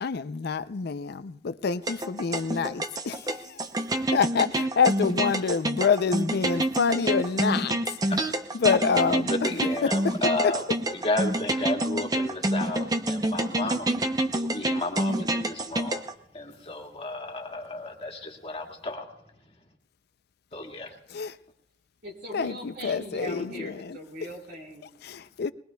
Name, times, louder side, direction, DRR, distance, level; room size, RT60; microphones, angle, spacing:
voice 1, 0.0-3.6 4.1-8.0 8.5-9.3 9.8-10.1 10.4-10.5 15.1-15.2 21.1-21.4 22.3-24.0 25.0-25.5, left 5 dB, 60° left, 0.5 m, -27 dB
sound 1, 1.9-16.1, right 1 dB, 20° right, 0.7 m, -27 dB
voice 2, 9.3-10.6 10.9-14.0 14.3-16.0 16.3-19.1 20.5-21.0, left 2 dB, 35° left, 1.9 m, -32 dB
voice 3, 22.0-24.9, equal, 65° right, 4.3 m, -40 dB
22.0 x 20.5 x 2.3 m
head